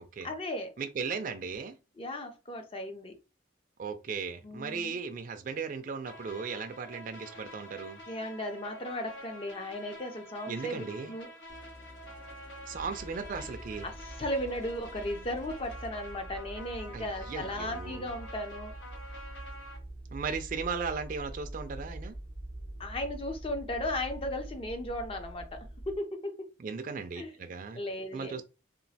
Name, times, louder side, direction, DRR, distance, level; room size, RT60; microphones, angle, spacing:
voice 1, 0.2-0.7 2.0-3.1 4.4-5.0 8.1-11.3 13.8-18.7 22.8-26.5 27.2-27.3 27.7-28.4, left 1 dB, 30° left, 0.4 m, -36 dB
voice 2, 0.8-1.7 3.8-8.0 10.5-11.1 12.7-13.9 16.9-18.1 20.1-22.2 26.6-27.8 28.1-28.4, right 5 dB, 40° right, 0.3 m, -37 dB
sound 1, 6.0-19.8, equal, 70° left, 1.0 m, -48 dB
sound 2, 11.5-15.9, left 1 dB, 90° left, 1.3 m, -52 dB
sound 3, 12.7-26.0, right 1 dB, 55° left, 1.3 m, -45 dB
3.0 x 2.4 x 2.7 m
head